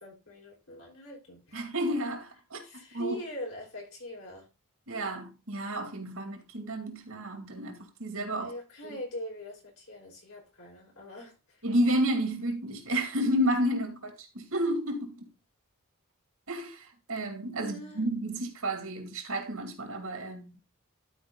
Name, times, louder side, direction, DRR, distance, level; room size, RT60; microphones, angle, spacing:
voice 1, 0.0-1.6 2.6-4.5 8.4-11.6 17.6-18.1, equal, 75° left, 4.9 m, -42 dB
voice 2, 1.5-2.6 2.9-3.2 4.9-8.5 8.8-9.0 11.6-15.3 16.5-20.6, equal, 75° right, 2.3 m, -31 dB
12.0 x 4.7 x 3.9 m
head